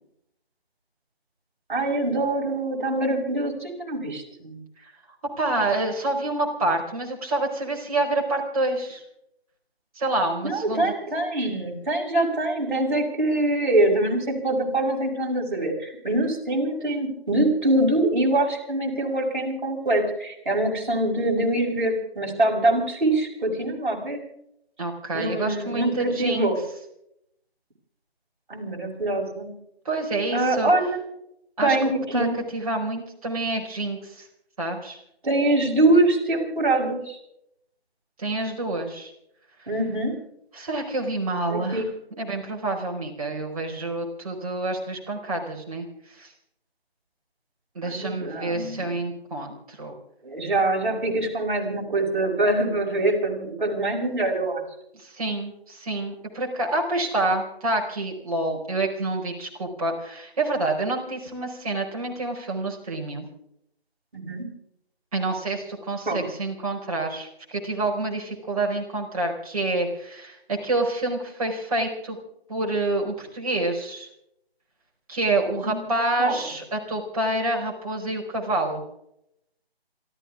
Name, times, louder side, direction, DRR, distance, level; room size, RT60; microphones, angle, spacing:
voice 1, 1.7-4.6 10.4-24.2 25.1-25.9 26.2-26.6 28.5-29.5 30.3-31.0 31.6-32.4 35.2-37.2 39.7-40.1 41.5-41.9 47.8-49.0 50.2-54.6 64.1-64.5 66.1-66.3 75.6-75.8 76.2-76.4, right 2 dB, 50° right, -1 dB, 6.3 m, -24 dB
voice 2, 5.4-9.0 9.9-10.9 24.8-26.5 29.8-30.7 31.6-31.8 32.1-32.3 32.5-34.3 34.6-35.0 38.2-39.1 40.5-41.8 42.2-45.8 46.2-46.3 47.7-49.9 55.0-63.3 65.1-72.2 72.5-74.1 75.1-78.8, right 2 dB, 35° right, 0 dB, 4.8 m, -27 dB
28.0 x 14.0 x 3.6 m, 0.76 s
figure-of-eight pair, 160°, 31 cm